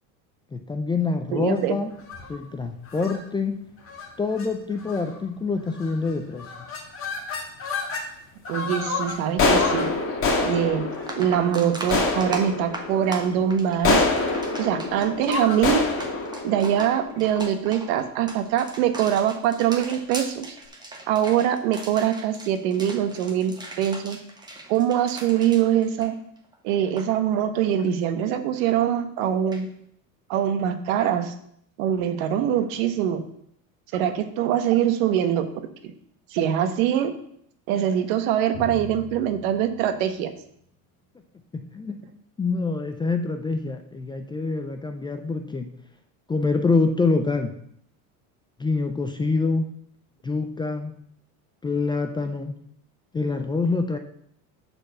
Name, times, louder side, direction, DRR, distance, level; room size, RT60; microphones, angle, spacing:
voice 1, 0.5-1.9 2.3-3.6 4.2-6.5 41.5-42.0 42.4-45.7 46.3-47.5 48.6-49.7 50.2-50.9 51.6-52.5 53.1-54.0, left 3 dB, 10° left, 6 dB, 0.4 m, -25 dB
voice 2, 1.3-1.8 8.5-9.9 10.4-10.9 11.2-14.0 14.6-15.8 16.4-20.6 21.1-24.2 24.7-26.2 26.6-29.7 30.3-31.3 31.8-33.2 33.9-35.5 35.8-35.9 36.3-37.1 37.7-40.3, right 10 dB, 80° right, 8 dB, 1.2 m, -23 dB
sound 1, 2.0-2.4 2.9-3.2 3.9-4.1 4.4-4.5 4.8-5.2 5.8-6.1 6.4-8.1 8.5-17.6, left 3 dB, 30° left, 2.0 m, -27 dB
sound 2, 10.4-10.5 10.9-26.5 26.8-27.1 29.5-29.6, right 2 dB, 10° right, 1.2 m, -39 dB
Drum, 38.5-40.9, left 5 dB, 60° left, 1.5 m, -41 dB
7.9 x 4.5 x 7.0 m, 0.68 s
cardioid pair, 135°, 41 cm